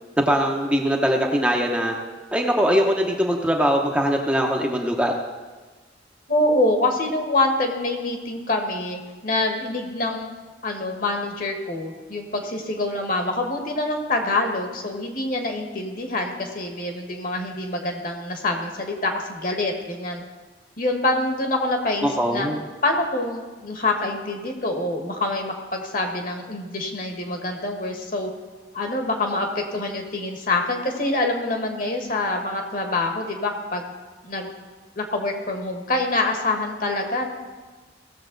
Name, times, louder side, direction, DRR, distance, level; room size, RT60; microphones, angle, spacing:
voice 1, 0.2-1.9 2.3-5.1 22.0-22.6, equal, 5° right, 0 dB, 0.8 m, -21 dB
voice 2, 6.3-10.3 10.6-20.2 20.8-22.5 22.8-28.3 28.7-33.9 34.2-34.5 35.0-37.3, left 2 dB, 50° left, 3 dB, 1.4 m, -25 dB
17.0 x 7.1 x 3.9 m, 1.3 s
head